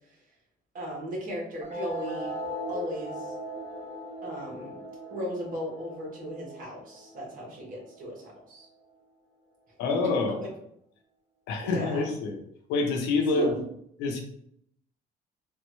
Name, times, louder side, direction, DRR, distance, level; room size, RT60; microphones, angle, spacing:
voice 1, 0.7-2.3 2.7-3.3 4.2-4.8 5.1-8.2 8.5-8.7 9.9-10.1 10.4-10.5 11.6-12.1 13.3-13.6, equal, 55° right, -2 dB, 1.3 m, -36 dB
sound 1, 1.6-8.6, equal, 40° right, 0.8 m, -39 dB
voice 2, 9.8-10.5 11.5-12.4 12.7-13.5 14.0-14.2, left 3 dB, 85° left, 3 dB, 0.7 m, -27 dB
3.3 x 2.1 x 3.0 m, 0.71 s
cardioid pair, 110°, 17 cm